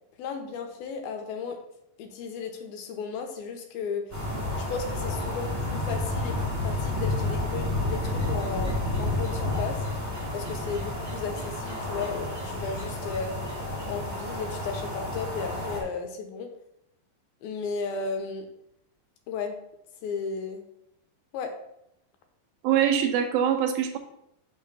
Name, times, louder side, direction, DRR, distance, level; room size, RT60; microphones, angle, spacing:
voice 1, 0.2-1.6 2.0-4.1 4.7-9.9 10.3-13.4 13.9-16.5 17.4-18.5 19.3-19.6 20.0-20.6 21.3-21.5, left 5 dB, 80° left, 5 dB, 2.7 m, -34 dB
sound 1, 4.1-15.8, left 2 dB, 25° right, 0.3 m, -30 dB
voice 2, 22.6-24.0, right 9 dB, 80° right, 5 dB, 2.5 m, -23 dB
6.5 x 3.7 x 6.0 m, 0.78 s
omnidirectional pair, 4.3 m